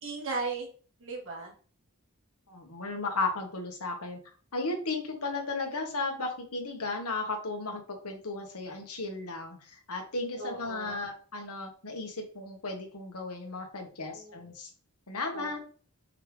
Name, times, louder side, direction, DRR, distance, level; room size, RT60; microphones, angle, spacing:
voice 1, 0.0-0.7 1.0-1.5 10.4-11.0 14.0-14.3 15.3-15.7, right 3 dB, 60° right, -1 dB, 2.1 m, -36 dB
voice 2, 2.5-14.7 15.1-15.6, left 3 dB, 90° left, 3 dB, 1.7 m, -35 dB
5.7 x 5.0 x 3.5 m, 0.41 s
head